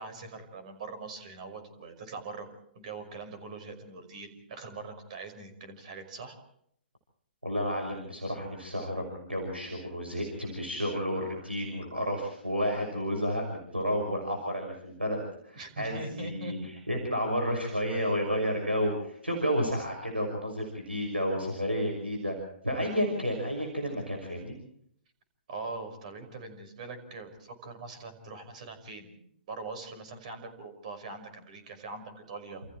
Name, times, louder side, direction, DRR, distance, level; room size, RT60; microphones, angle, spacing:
voice 1, 0.0-6.4 15.5-16.7 25.5-29.2 29.5-32.6, right 3 dB, 45° right, 8 dB, 5.6 m, -42 dB
voice 2, 7.4-16.6 16.9-22.4 22.6-24.5, equal, 90° right, 2 dB, 6.1 m, -31 dB
29.0 x 28.5 x 3.1 m, 0.68 s
figure-of-eight pair, 120°, 6 cm